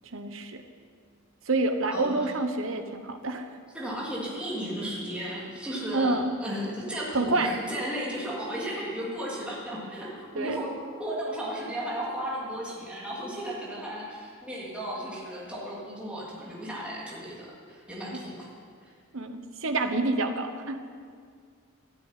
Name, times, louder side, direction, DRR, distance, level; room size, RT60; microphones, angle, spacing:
voice 1, 0.1-0.6 1.5-3.5 5.9-6.3 7.1-7.5 10.3-10.6 19.1-20.8, right 2 dB, 65° right, 7 dB, 1.2 m, -27 dB
voice 2, 1.9-2.3 3.7-18.4 18.8-18.9, equal, 5° right, -6 dB, 3.4 m, -35 dB
13.5 x 9.2 x 9.2 m, 2.1 s
head